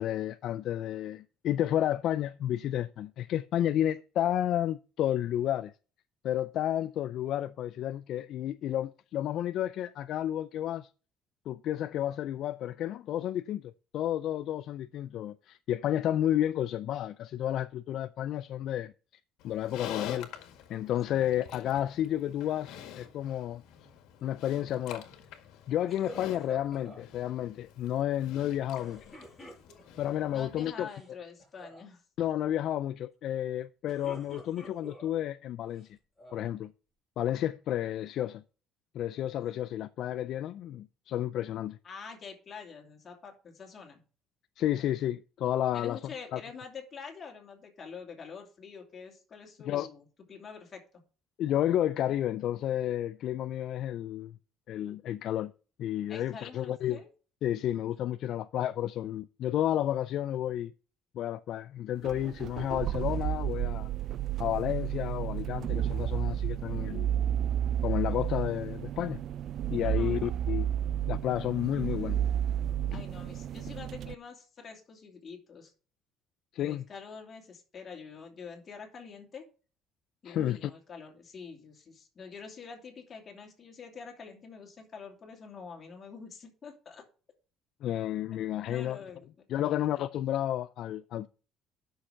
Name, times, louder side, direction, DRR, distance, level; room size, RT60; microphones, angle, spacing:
voice 1, 0.0-5.7 6.2-10.9 11.5-18.9 19.4-20.3 20.7-23.6 24.2-25.1 25.7-29.1 30.0-30.9 32.2-36.0 36.3-36.7 37.2-38.4 38.9-41.8 44.6-46.0 46.3-46.4 49.7-49.9 51.4-54.4 54.7-55.5 55.8-57.0 57.4-60.7 61.1-63.9 64.4-67.1 67.8-69.2 69.7-70.7 71.1-72.2 72.9-73.0 76.5-76.8 80.2-80.7 87.8-89.0 89.5-91.3, left 11 dB, 55° left, 0.4 m, -31 dB
Livestock farm animals working animals, 19.4-30.7, left 10 dB, 85° left, 1.8 m, -46 dB
sound 1, 25.9-27.0 28.7-30.0 30.7-31.1 31.4-31.8 33.6-35.2 35.7-36.5, equal, 5° left, 6.9 m, -49 dB
voice 2, 30.3-32.0 41.8-44.0 45.7-50.8 56.1-57.1 69.8-70.2 72.9-75.7 76.6-79.4 80.2-87.0 88.6-89.3 89.6-89.8, left 5 dB, 30° left, 2.8 m, -46 dB
sound 2, 62.0-74.1, right 10 dB, 50° right, 0.4 m, -32 dB
10.5 x 6.4 x 5.7 m
cardioid pair, 150°, 0 cm